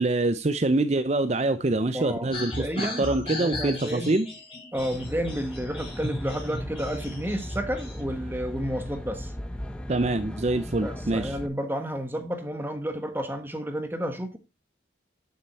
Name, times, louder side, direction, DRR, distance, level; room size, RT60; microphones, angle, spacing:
voice 1, 0.0-4.3 9.9-11.3, right 2 dB, 35° right, 0.6 m, -25 dB
voice 2, 1.9-3.1 3.4-4.2 4.7-9.3 10.8-14.4, equal, 10° right, 1.3 m, -31 dB
sound 1, 2.3-8.0, left 1 dB, 30° left, 4.6 m, -36 dB
Aircraft, 4.7-11.5, left 1 dB, 5° left, 1.0 m, -37 dB
9.4 x 6.8 x 4.3 m
head